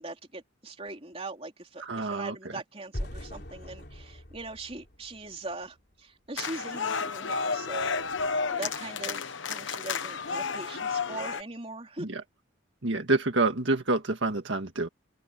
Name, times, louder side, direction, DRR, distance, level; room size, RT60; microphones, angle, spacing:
voice 1, 0.0-12.1, right 2 dB, 30° right, 3.6 m, -41 dB
voice 2, 1.8-2.4 12.0-12.2 12.8-14.9, right 2 dB, 70° right, 1.8 m, -27 dB
sound 1, 2.9-5.9, equal, 55° left, 3.7 m, -41 dB
sound 2, 6.4-11.4, left 5 dB, 70° left, 1.1 m, -31 dB
open air
head